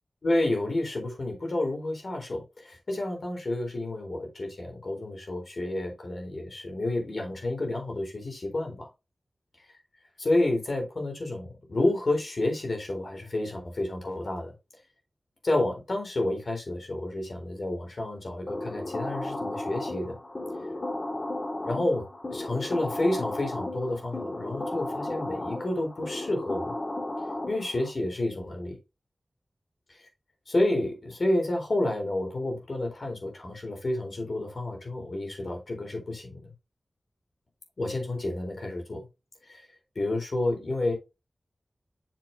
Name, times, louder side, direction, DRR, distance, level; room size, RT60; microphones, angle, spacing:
voice 1, 0.2-8.9 10.2-14.5 15.4-20.2 21.6-22.0 22.3-26.7 27.5-28.8 30.5-36.5 37.8-39.1 39.5-39.6 40.0-40.9, left 1 dB, 70° left, 4.1 m, -30 dB
sound 1, 18.5-27.9, left 1 dB, 50° left, 2.0 m, -34 dB
7.7 x 7.0 x 2.8 m
cardioid pair, 45°, 0 cm